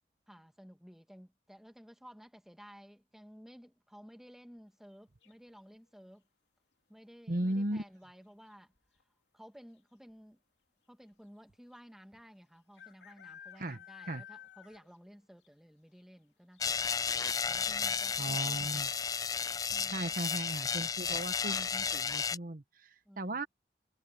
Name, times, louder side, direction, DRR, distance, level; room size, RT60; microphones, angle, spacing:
voice 1, 0.3-6.2 6.9-8.7 9.3-10.4 10.9-17.1 17.5-18.8 19.7-20.1 23.1-23.4, equal, ahead, 2.0 m, -55 dB
sound 1, 5.2-5.7 7.5-7.9 8.2-8.3 8.5-9.0 9.8-9.9 10.1-10.2 11.7-11.8 12.8-15.1 15.4-15.5 16.0-16.1 16.5-16.6, left 9 dB, 80° left, 2.8 m, -52 dB
voice 2, 7.3-7.8 13.6-13.8 14.1-14.2 18.2-18.9 19.9-23.5, right 1 dB, 50° right, 1.1 m, -37 dB
sound 2, 16.6-22.4, left 6 dB, 20° left, 0.4 m, -33 dB
head